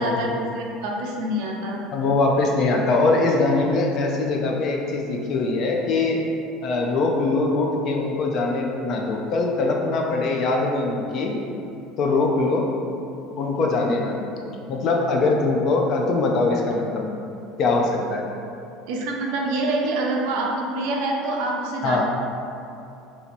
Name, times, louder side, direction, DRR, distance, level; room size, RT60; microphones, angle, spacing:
voice 1, 0.0-1.8 18.9-22.0, right 1 dB, 65° right, -1 dB, 0.5 m, -26 dB
voice 2, 1.9-6.2 6.6-11.4 12.0-12.8 13.4-14.3 14.7-17.1 17.6-18.2 21.8-22.0, left 3 dB, 35° left, 0 dB, 0.4 m, -22 dB
2.9 x 2.7 x 4.3 m, 2.7 s
cardioid pair, 170°, 0 cm